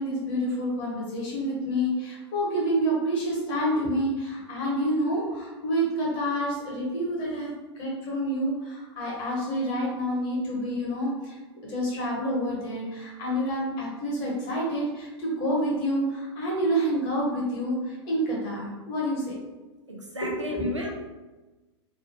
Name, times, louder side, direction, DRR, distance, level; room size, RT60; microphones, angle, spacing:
voice 1, 0.0-11.4 11.6-19.3 20.2-20.7, equal, 35° left, -4 dB, 1.2 m, -28 dB
voice 2, 19.9-21.0, left 1 dB, 85° right, 0 dB, 0.6 m, -33 dB
3.5 x 2.2 x 2.8 m, 1.2 s
figure-of-eight pair, 95°, 15 cm